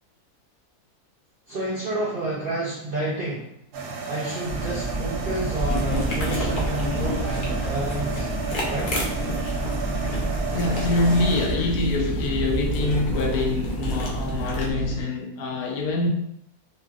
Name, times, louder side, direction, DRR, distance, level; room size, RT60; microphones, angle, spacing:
voice 1, 1.5-3.5 4.1-8.3 8.7-9.0, right 2 dB, 70° right, 0.5 m, -30 dB
sound 1, 3.7-11.5, right 5 dB, 85° right, 1.1 m, -33 dB
sound 2, 4.5-15.0, right 2 dB, 15° left, 1.2 m, -30 dB
sound 3, 5.7-14.7, equal, 60° left, 0.5 m, -30 dB
voice 2, 10.5-16.1, left 3 dB, 80° left, 1.1 m, -25 dB
2.9 x 2.6 x 2.3 m
omnidirectional pair, 1.6 m